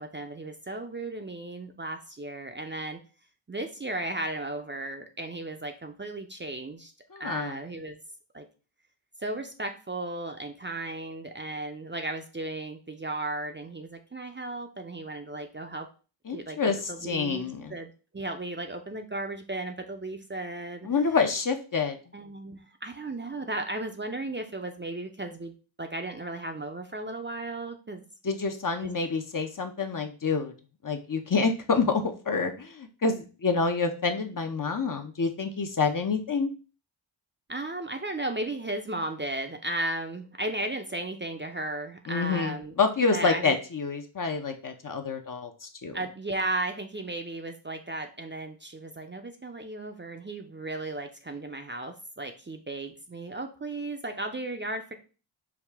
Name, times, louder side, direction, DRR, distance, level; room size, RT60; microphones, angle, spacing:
voice 1, 0.0-3.0 3.5-6.9 7.2-8.0 8.3-8.4 9.2-15.9 16.3-16.6 16.9-17.4 17.7-20.9 22.1-25.5 25.8-28.0 28.8-28.9 37.5-42.7 43.1-43.6 45.9-54.9, right 2 dB, 25° right, 5 dB, 0.5 m, -35 dB
voice 2, 7.1-7.6 16.3-17.7 20.8-22.0 28.2-30.5 30.8-36.5 42.1-46.0, left 4 dB, 40° left, 6 dB, 0.7 m, -27 dB
4.9 x 2.3 x 3.4 m, 0.35 s
cardioid pair, 45°, 50 cm